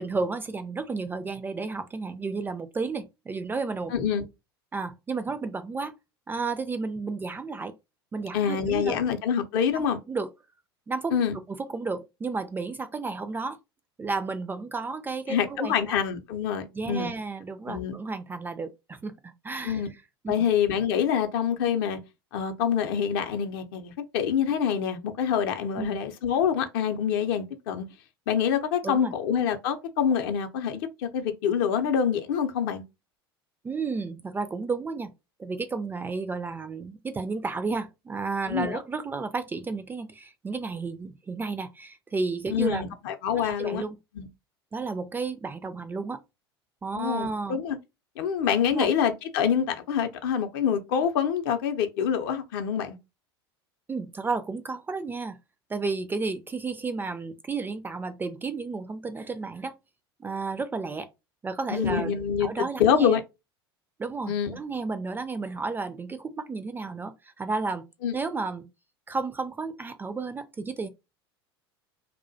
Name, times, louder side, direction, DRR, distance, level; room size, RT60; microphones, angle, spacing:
voice 1, 0.0-3.9 4.7-5.9 6.3-7.7 8.1-9.0 9.7-10.3 10.9-11.2 11.5-13.6 14.0-15.7 16.7-19.8 20.2-20.3 25.8-26.0 28.8-29.1 33.6-35.1 35.4-42.9 43.4-44.0 44.7-46.2 46.8-47.6 48.7-48.9 53.9-55.4 55.7-59.7 60.2-61.1 61.4-62.1 62.4-63.2 64.0-67.9 68.1-68.7 69.1-70.9, right 4 dB, 15° right, 0.3 m, -32 dB
voice 2, 3.9-4.2 8.3-10.0 11.1-11.4 15.3-17.1 17.7-17.9 19.6-19.9 20.3-22.0 22.3-27.9 28.3-32.8 38.5-38.8 42.5-43.8 44.2-44.3 46.9-47.8 48.2-53.0 61.7-63.2 64.3-64.6 68.0-68.1, left 8 dB, 60° left, 0.5 m, -26 dB
2.3 x 2.1 x 2.6 m
figure-of-eight pair, 80°, 13 cm